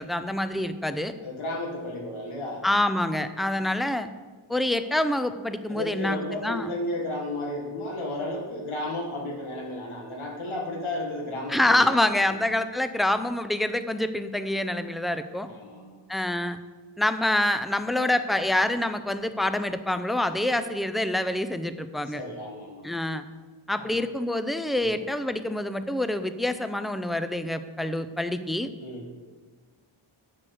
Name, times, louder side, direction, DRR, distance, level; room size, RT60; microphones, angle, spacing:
voice 1, 0.0-1.1 2.6-4.1 4.5-6.7 11.5-15.5 16.1-16.6 17.0-22.2 22.8-23.2 23.7-28.7, left 1 dB, ahead, 10 dB, 0.4 m, -26 dB
voice 2, 1.2-2.6 3.5-3.7 5.7-12.0 15.4-16.0 22.1-22.8 23.8-24.0 24.8-24.9 28.8-29.1, left 1 dB, 75° left, 0 dB, 1.8 m, -33 dB
7.6 x 6.5 x 7.7 m, 1.3 s
wide cardioid pair, 110°, 50 cm